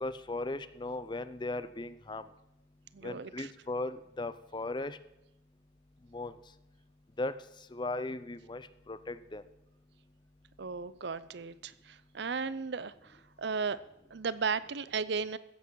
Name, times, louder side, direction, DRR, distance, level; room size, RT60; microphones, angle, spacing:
voice 1, 0.0-2.2 3.0-5.0 6.1-6.3 7.2-7.3 7.7-9.4, left 2 dB, 25° left, 14 dB, 0.5 m, -37 dB
voice 2, 2.9-3.5 10.6-13.8 14.1-15.4, right 5 dB, 60° right, 17 dB, 0.6 m, -35 dB
15.5 x 8.2 x 6.3 m, 0.87 s
head